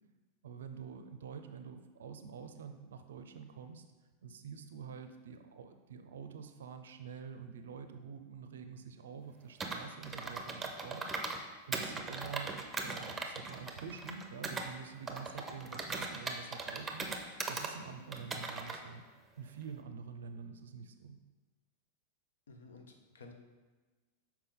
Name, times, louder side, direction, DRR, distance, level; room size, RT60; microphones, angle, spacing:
voice 1, 0.4-3.8 4.2-11.0 11.3-17.1 17.5-19.1 19.4-21.2, right 6 dB, 65° right, 8 dB, 0.5 m, -47 dB
Computer keyboard, 9.6-11.4 11.7-14.7 15.1-17.7 18.1-18.8, right 3 dB, 15° right, 0.7 m, -39 dB
voice 2, 22.5-23.3, left 3 dB, 65° left, 4 dB, 0.8 m, -53 dB
6.8 x 4.6 x 3.7 m, 1.3 s
figure-of-eight pair, 90°, 0 cm